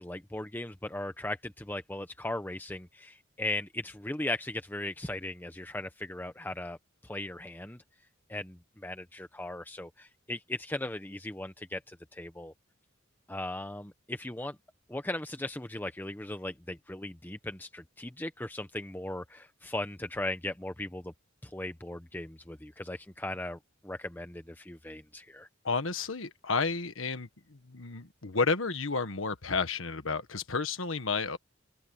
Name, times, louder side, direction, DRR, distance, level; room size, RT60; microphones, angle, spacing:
voice 1, 0.0-6.8 7.0-7.8 8.3-12.5 13.3-14.6 14.9-21.1 21.4-25.5, left 1 dB, 10° left, 0.9 m, -38 dB
voice 2, 25.6-31.4, left 4 dB, 90° left, 1.5 m, -31 dB
open air
head